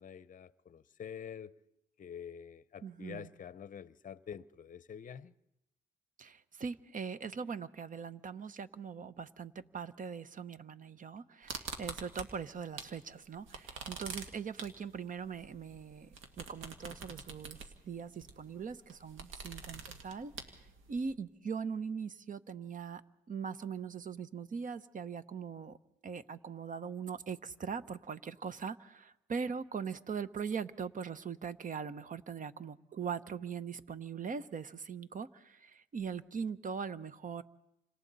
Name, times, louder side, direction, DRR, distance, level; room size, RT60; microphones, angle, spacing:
voice 1, 0.0-1.6 2.0-5.3, left 8 dB, 40° left, 0.7 m, -47 dB
voice 2, 2.8-3.3 6.2-16.1 16.4-17.6 17.8-20.3 20.9-23.0 23.3-25.8 26.0-37.4, right 6 dB, 40° right, 0.9 m, -41 dB
sound 1, 11.5-13.0 13.3-21.1, right 5 dB, 80° right, 1.9 m, -46 dB
29.0 x 26.0 x 4.1 m
cardioid pair, 90°, 20 cm